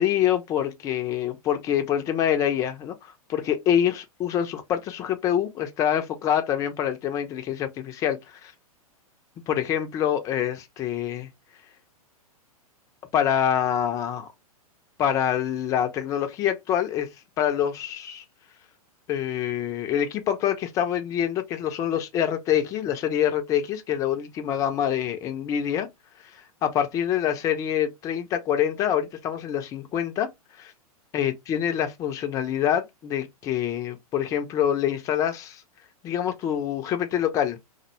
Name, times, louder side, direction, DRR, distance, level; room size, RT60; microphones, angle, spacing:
voice 1, 0.0-8.5 9.5-11.3 13.1-14.3 15.0-17.1 17.4-18.2 19.1-25.9 26.6-30.3 30.6-30.7 31.1-35.6 36.0-37.6, left 10 dB, 15° left, 0.3 m, -26 dB
2.5 x 2.1 x 2.5 m
figure-of-eight pair, 105°, 19 cm